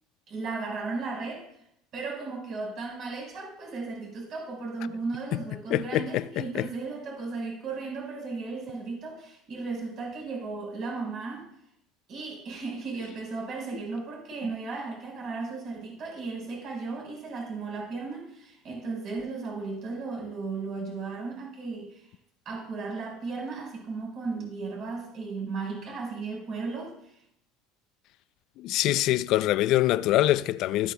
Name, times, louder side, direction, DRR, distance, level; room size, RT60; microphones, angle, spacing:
voice 1, 0.3-1.4 1.9-11.5 12.1-22.1 22.4-26.9, right 4 dB, 40° right, 4.7 m, -35 dB
voice 2, 5.7-6.6 28.6-30.9, left 15 dB, 50° left, 0.3 m, -24 dB
13.5 x 13.5 x 2.2 m
cardioid pair, 155°, 0 cm